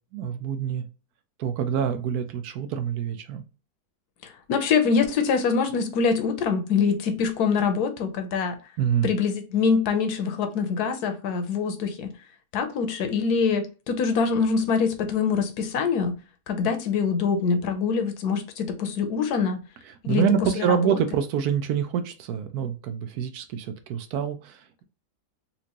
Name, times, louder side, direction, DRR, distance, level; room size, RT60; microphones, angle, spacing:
voice 1, 0.1-0.8 1.4-3.4 8.8-9.1 20.1-24.8, right 8 dB, 75° right, 1.1 m, -26 dB
voice 2, 4.2-8.6 9.0-12.1 12.5-16.2 16.5-19.6 20.0-20.2 20.6-21.0, left 5 dB, 70° left, 1.2 m, -24 dB
4.3 x 2.5 x 2.8 m
omnidirectional pair, 1.7 m